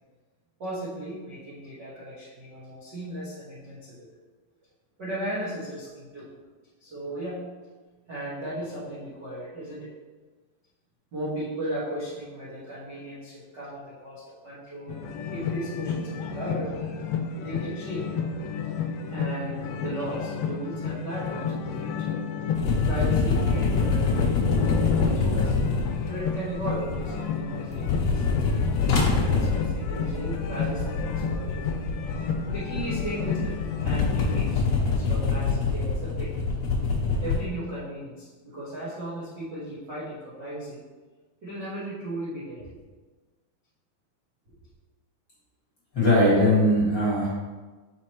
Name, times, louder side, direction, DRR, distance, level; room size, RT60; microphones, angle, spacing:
voice 1, 0.6-4.1 5.0-6.3 6.8-7.5 8.1-9.9 11.1-15.0 15.3-16.9 17.3-18.0 19.1-22.1 22.8-25.5 26.1-28.6 29.1-31.7 32.5-36.3 37.2-40.8 41.4-42.7, right 1 dB, 55° right, -11 dB, 1.2 m, -36 dB
sound 1, 14.9-34.4, left 6 dB, 80° left, 2.3 m, -31 dB
sound 2, 22.5-27.3 27.6-37.3, left 4 dB, 60° left, 1.5 m, -26 dB
voice 2, 45.9-47.3, left 1 dB, 40° left, -10 dB, 1.9 m, -20 dB
6.3 x 5.2 x 3.0 m, 1.3 s
omnidirectional pair, 4.2 m